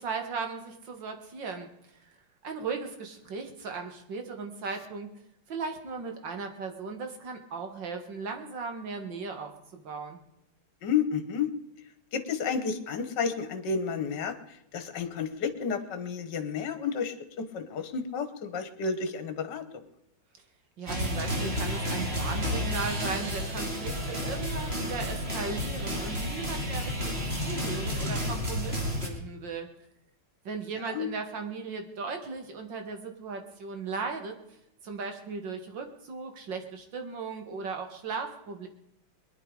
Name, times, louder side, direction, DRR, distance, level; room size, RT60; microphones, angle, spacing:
voice 1, 0.0-1.7 2.0-2.1 2.4-5.1 5.5-10.2 20.8-29.7 30.4-34.4 34.8-38.7, right 4 dB, 60° right, 4 dB, 2.5 m, -37 dB
voice 2, 10.8-11.5 12.1-14.4 14.7-19.6 30.9-31.1, left 6 dB, 55° left, 10 dB, 1.9 m, -31 dB
sound 1, 20.9-29.1, equal, 30° right, 2.8 m, -31 dB
21.5 x 10.5 x 4.9 m, 0.79 s
omnidirectional pair, 2.3 m